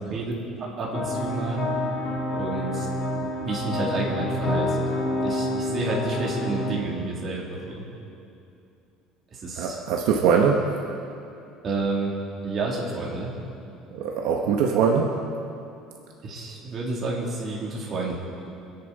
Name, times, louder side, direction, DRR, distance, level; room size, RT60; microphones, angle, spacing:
voice 1, 0.1-1.7 2.3-2.9 3.4-7.9 9.3-9.8 11.6-12.1 12.4-13.3 16.2-18.2, right 3 dB, 30° right, -4 dB, 2.9 m, -30 dB
sound 1, 0.9-6.7, left 1 dB, 35° left, 3.7 m, -28 dB
voice 2, 9.6-10.6 13.9-15.1, right 6 dB, 65° right, 1 dB, 1.2 m, -22 dB
26.0 x 10.5 x 4.2 m, 2.7 s
cardioid pair, 170°, 0 cm